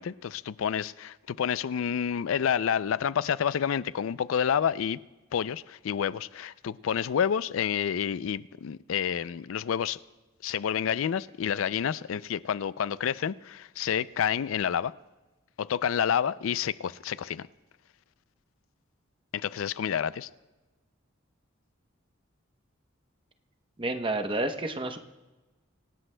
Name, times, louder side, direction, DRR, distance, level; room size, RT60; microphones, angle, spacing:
voice 1, 0.0-5.0 5.3-10.0 10.4-14.9 15.6-17.5 19.3-20.3, left 8 dB, 85° left, 0.4 m, -29 dB
voice 2, 23.8-25.0, right 2 dB, 25° right, 0.8 m, -30 dB
26.0 x 17.0 x 2.2 m
head